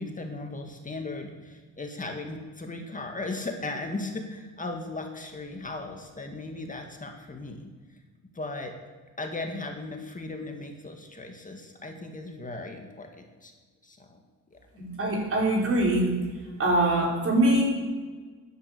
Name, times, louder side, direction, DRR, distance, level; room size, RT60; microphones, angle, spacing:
voice 1, 0.0-7.7 8.3-8.7 9.2-13.5 13.8-14.2 14.5-14.6, left 2 dB, 25° left, 3 dB, 2.0 m, -37 dB
voice 2, 14.8-16.1 16.6-17.6, right 1 dB, 45° right, -2 dB, 5.1 m, -23 dB
15.0 x 10.0 x 7.0 m, 1.4 s
cardioid pair, 90°, 30 cm